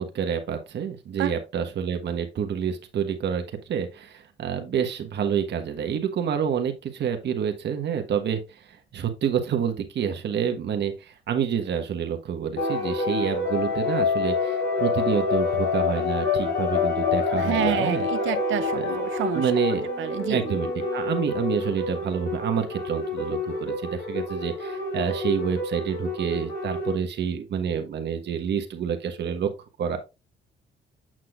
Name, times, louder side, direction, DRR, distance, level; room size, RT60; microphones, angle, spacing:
voice 1, 0.0-18.1 18.8-18.9 19.3-19.9 20.3-29.5 29.8-30.0, right 8 dB, 60° right, 1.2 m, -28 dB
sound 1, 12.6-27.0, left 4 dB, 80° left, 3.6 m, -27 dB
voice 2, 17.3-19.5 20.0-20.6, right 12 dB, 80° right, 0.7 m, -29 dB
sound 2, 19.4-22.3, left 2 dB, 20° left, 1.0 m, -37 dB
7.5 x 6.1 x 2.4 m
cardioid pair, 90°, 20 cm